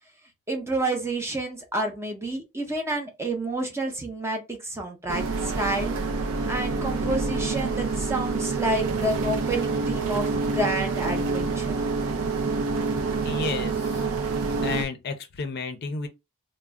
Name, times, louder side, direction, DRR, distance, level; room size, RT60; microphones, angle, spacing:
voice 1, 0.5-5.9 6.5-11.8, right 1 dB, 10° right, 0.6 m, -29 dB
sound 1, 5.1-14.9, right 4 dB, 65° right, 0.4 m, -27 dB
voice 2, 13.2-14.1 14.6-16.1, left 4 dB, 45° left, 0.5 m, -32 dB
2.3 x 2.0 x 3.5 m
head